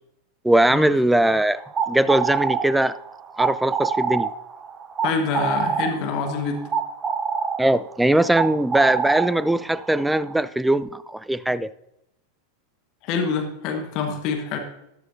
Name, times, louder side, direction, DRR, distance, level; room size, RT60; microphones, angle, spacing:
voice 1, 0.4-1.6 1.9-3.0 3.4-4.3 7.6-11.7, right 1 dB, 5° right, 17 dB, 0.3 m, -20 dB
sound 1, 1.6-10.4, right 6 dB, 20° right, 0.7 m, -27 dB
voice 2, 5.0-6.7 13.0-14.6, left 5 dB, 40° left, 5 dB, 1.3 m, -26 dB
14.0 x 11.0 x 2.6 m, 0.83 s
figure-of-eight pair, 90°, 0 cm